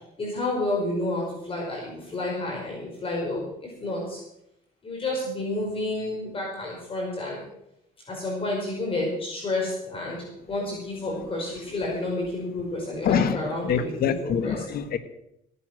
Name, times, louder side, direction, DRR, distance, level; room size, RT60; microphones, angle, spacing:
voice 1, 0.2-4.2 4.8-7.4 8.1-13.9 14.2-14.6, left 2 dB, 35° left, -2 dB, 5.2 m, -30 dB
voice 2, 13.0-13.4 13.6-15.0, left 7 dB, 60° left, 10 dB, 1.6 m, -25 dB
16.5 x 9.9 x 6.2 m, 0.81 s
cardioid pair, 110°, 17 cm